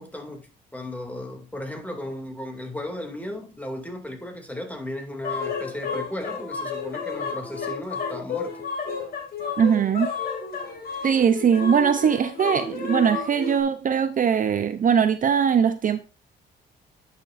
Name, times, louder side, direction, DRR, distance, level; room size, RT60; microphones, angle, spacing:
voice 1, 0.0-8.5, left 1 dB, 10° left, 2.3 m, -35 dB
sound 1, 5.2-13.6, left 5 dB, 50° left, 2.6 m, -31 dB
voice 2, 9.6-10.1 11.0-16.0, right 7 dB, 45° right, 0.5 m, -21 dB
10.5 x 6.4 x 2.5 m
cardioid pair, 90°, 20 cm